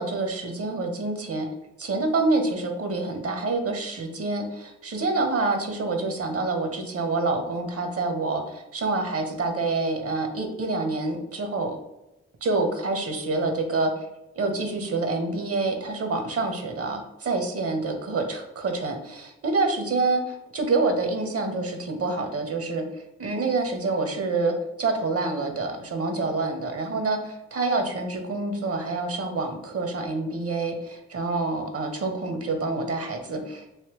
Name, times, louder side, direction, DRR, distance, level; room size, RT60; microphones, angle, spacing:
voice 1, 0.0-1.5 1.8-11.8 12.4-14.1 14.4-33.7, right 3 dB, 50° right, 5 dB, 0.8 m, -27 dB
3.3 x 2.9 x 2.9 m, 0.94 s
supercardioid pair, 50°, 30 cm